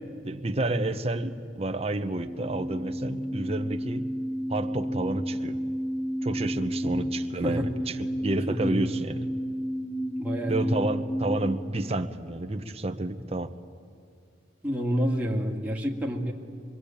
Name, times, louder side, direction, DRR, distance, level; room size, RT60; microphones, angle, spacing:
voice 1, 0.2-4.1 4.5-5.6 6.2-9.3 10.5-13.5, right 2 dB, 35° right, 7 dB, 1.1 m, -30 dB
sound 1, 2.0-11.6, equal, 25° left, 1.7 m, -32 dB
voice 2, 8.5-8.8 10.2-10.7 14.6-16.3, equal, 10° right, -1 dB, 2.2 m, -28 dB
25.0 x 23.0 x 8.7 m, 2.4 s
head